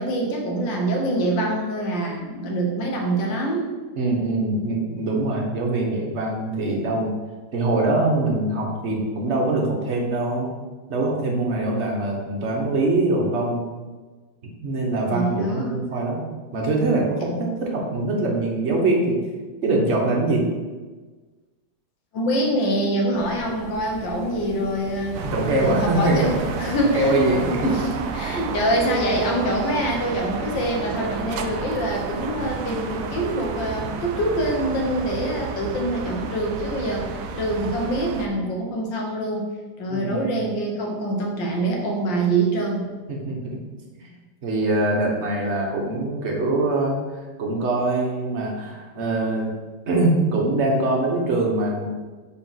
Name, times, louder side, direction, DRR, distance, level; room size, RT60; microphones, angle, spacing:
voice 1, 0.0-3.7 15.1-15.8 22.1-25.2 25.5-39.5 39.8-42.9, right 1 dB, 80° left, 0 dB, 1.8 m, -25 dB
voice 2, 4.0-7.1 7.5-10.5 10.9-13.6 14.4-16.2 16.5-19.2 19.6-20.4 25.2-26.4 26.8-27.6 39.9-40.4 43.1-43.6 43.9-44.1 44.4-47.0 47.4-49.5 49.9-51.9, right 2 dB, 40° right, -1 dB, 1.4 m, -23 dB
sound 1, 23.1-35.5, right 1 dB, 10° right, 1.3 m, -41 dB
sound 2, 25.1-38.3, right 5 dB, 75° right, 0.8 m, -32 dB
5.2 x 4.5 x 5.8 m, 1.3 s
omnidirectional pair, 2.0 m